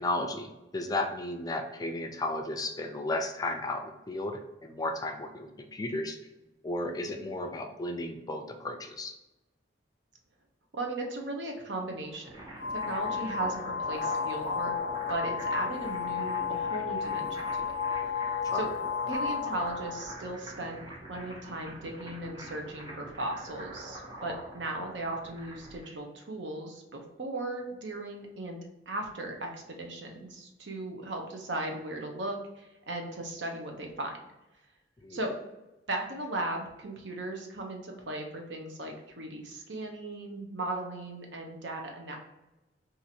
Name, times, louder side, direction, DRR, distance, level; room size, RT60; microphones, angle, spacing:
voice 1, 0.0-6.2 6.6-9.1 18.5-18.6 35.0-35.2, left 2 dB, 20° left, 4 dB, 0.4 m, -34 dB
voice 2, 10.7-14.8 15.1-18.1 18.5-18.7 19.1-20.8 21.1-28.6 28.9-34.1 35.1-35.3 35.9-42.2, right 2 dB, 75° right, 2 dB, 0.7 m, -37 dB
sound 1, 12.0-25.9, right 1 dB, 20° right, 0.8 m, -44 dB
sound 2, 12.6-20.1, left 6 dB, 75° left, 0.5 m, -33 dB
2.7 x 2.5 x 4.2 m, 1.0 s
head